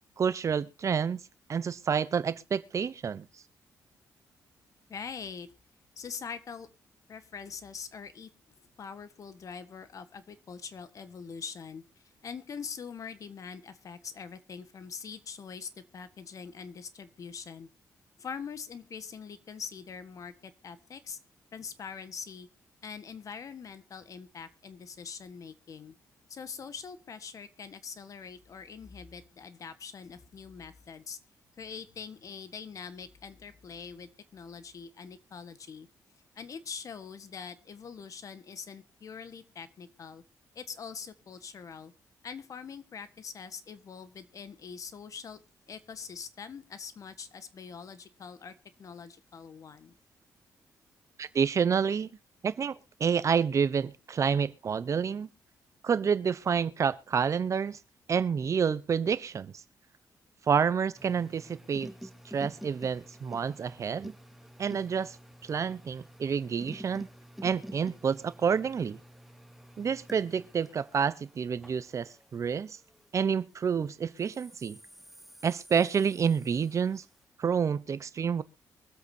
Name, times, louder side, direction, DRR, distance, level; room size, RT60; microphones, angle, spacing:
voice 1, 0.2-1.2 1.5-3.3 51.2-52.1 52.4-55.3 55.8-57.8 58.1-59.6 60.5-61.9 62.2-64.1 64.6-65.2 65.4-67.1 67.4-69.0 69.8-72.8 73.1-74.8 75.4-77.0 77.4-78.4, right 6 dB, 50° right, 0.9 m, -28 dB
voice 2, 4.9-5.5 6.0-6.7 7.1-8.3 8.8-11.8 12.2-17.7 18.2-21.2 21.5-22.5 22.8-25.9 26.3-31.2 31.6-35.9 36.3-40.2 40.5-41.9 42.2-45.4 45.7-48.5 48.8-49.9, left 6 dB, 55° left, 1.5 m, -43 dB
sound 1, 60.9-73.6 74.2-77.0, equal, ahead, 1.3 m, -49 dB
24.0 x 8.1 x 2.8 m
cardioid pair, 80°, 7 cm